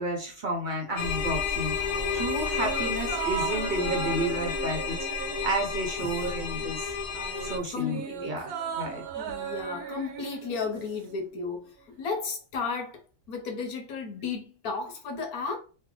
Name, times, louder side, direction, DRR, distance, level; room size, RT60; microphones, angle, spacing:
voice 1, 0.0-6.9 7.4-9.0, right 1 dB, 50° right, 0.6 m, -32 dB
sound 1, 1.0-7.6, left 6 dB, 65° left, 0.3 m, -31 dB
sound 2, 1.8-6.6 6.8-11.1 11.4-11.5, right 9 dB, 85° right, 1.2 m, -37 dB
voice 2, 7.7-8.3 9.1-13.0 13.3-15.6, left 5 dB, 85° left, 1.3 m, -34 dB
3.2 x 2.1 x 3.7 m
omnidirectional pair, 1.5 m